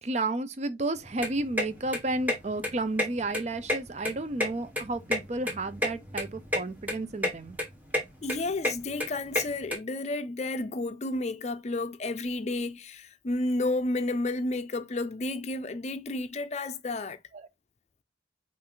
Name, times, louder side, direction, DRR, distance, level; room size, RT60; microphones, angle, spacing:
voice 1, 0.0-7.6 17.3-17.5, right 2 dB, 40° right, 0.5 m, -32 dB
sound 1, 1.0-9.8, left 1 dB, 10° right, 1.3 m, -31 dB
voice 2, 8.2-17.2, left 2 dB, 35° left, 0.5 m, -31 dB
5.5 x 2.5 x 3.7 m
head